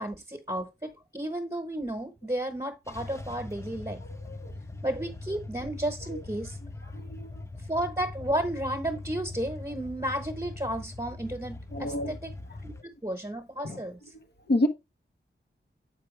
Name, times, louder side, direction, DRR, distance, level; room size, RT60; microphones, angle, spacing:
voice 1, 0.0-4.0 4.8-6.6 7.7-12.3 12.6-12.7 13.0-14.0, right 1 dB, 20° right, 1.1 m, -33 dB
sound 1, 2.8-12.8, left 2 dB, 15° left, 0.6 m, -41 dB
voice 2, 4.1-4.5 6.1-6.2 6.9-7.4 11.7-12.2 13.6-13.8 14.5-14.7, left 1 dB, 55° left, 0.9 m, -29 dB
7.2 x 4.5 x 3.3 m
wide cardioid pair, 60°, 21 cm